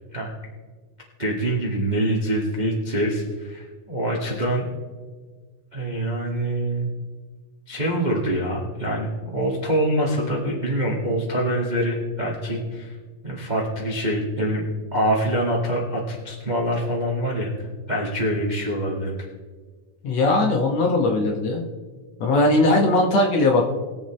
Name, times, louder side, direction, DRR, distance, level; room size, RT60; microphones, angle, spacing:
voice 1, 1.2-4.6 5.7-6.9 7.7-12.9 13.2-14.6 14.9-17.5 17.9-19.2, right 1 dB, 25° right, -2 dB, 0.8 m, -25 dB
voice 2, 20.0-21.6 22.2-23.7, left 2 dB, 60° left, 1 dB, 2.0 m, -19 dB
21.5 x 7.3 x 3.1 m, 1.4 s
omnidirectional pair, 3.9 m